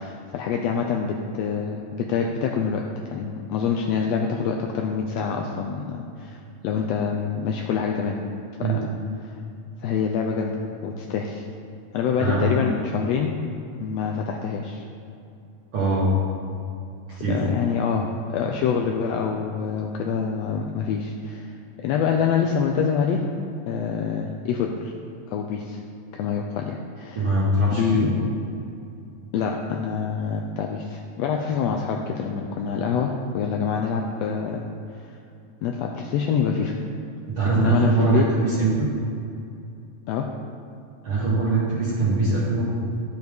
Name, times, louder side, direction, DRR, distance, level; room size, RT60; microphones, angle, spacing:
voice 1, 0.0-8.2 8.6-9.4 9.8-11.4 11.9-13.3 13.8-14.8 17.1-23.3 23.7-24.9 25.3-25.8 26.1-27.4 27.7-28.1 29.3-34.6 34.9-35.1 35.6-36.7 37.5-38.3 40.1-40.3, left 6 dB, 85° left, 1 dB, 1.4 m, -26 dB
voice 2, 12.2-12.6 15.7-16.1 17.2-17.5 27.2-28.1 37.3-38.9 41.0-42.6, right 3 dB, 55° right, -8 dB, 2.0 m, -22 dB
10.5 x 7.9 x 3.5 m, 2.6 s
omnidirectional pair, 3.5 m